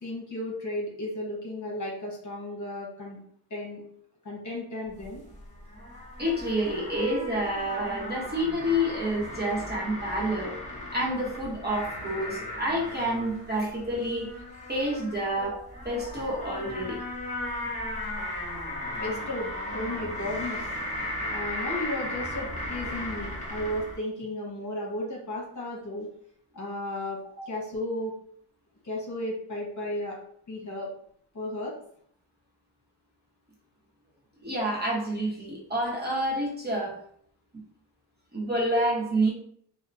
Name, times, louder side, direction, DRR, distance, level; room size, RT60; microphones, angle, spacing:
voice 1, 0.0-3.2 3.5-3.8 4.2-5.2 19.0-20.7 21.3-26.1 26.5-27.2 27.5-28.1 28.8-30.2 30.5-30.9 31.3-31.7, left 1 dB, 40° left, -2 dB, 1.0 m, -34 dB
sound 1, 4.9-24.0, left 1 dB, 15° left, 0.9 m, -36 dB
voice 2, 6.2-10.5 10.9-14.3 14.7-17.0 27.4-27.5 34.4-37.0 38.3-39.3, equal, 20° right, -4 dB, 0.9 m, -28 dB
2.8 x 2.0 x 2.5 m, 0.62 s
cardioid pair, 85°, 44 cm